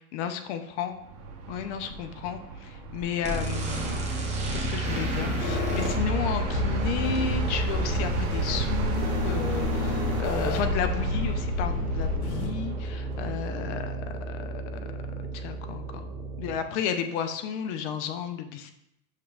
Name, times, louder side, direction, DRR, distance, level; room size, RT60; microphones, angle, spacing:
voice 1, 0.1-1.0 1.5-14.8 15.3-16.1 16.4-18.7, left 7 dB, 50° left, 7 dB, 0.6 m, -33 dB
sound 1, 0.9-13.6, right 2 dB, 50° right, 1.0 m, -37 dB
sound 2, 3.2-16.6, right 3 dB, 15° right, 0.8 m, -32 dB
sound 3, 4.8-12.5, left 2 dB, 70° left, 1.1 m, -30 dB
6.5 x 3.2 x 2.3 m, 0.80 s
hypercardioid pair, 100°, 45 cm